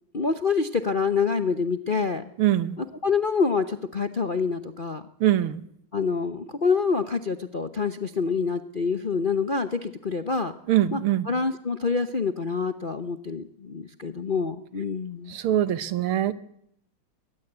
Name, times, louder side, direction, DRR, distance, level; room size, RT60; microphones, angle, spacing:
voice 1, 0.1-2.2 2.8-5.0 5.9-10.5 10.9-11.0 11.3-15.3, left 5 dB, 45° left, 8 dB, 0.7 m, -26 dB
voice 2, 2.4-2.8 5.2-5.6 10.7-11.3 15.3-16.3, right 12 dB, 80° right, 14 dB, 2.0 m, -23 dB
23.0 x 19.0 x 8.1 m, 0.73 s
omnidirectional pair, 2.3 m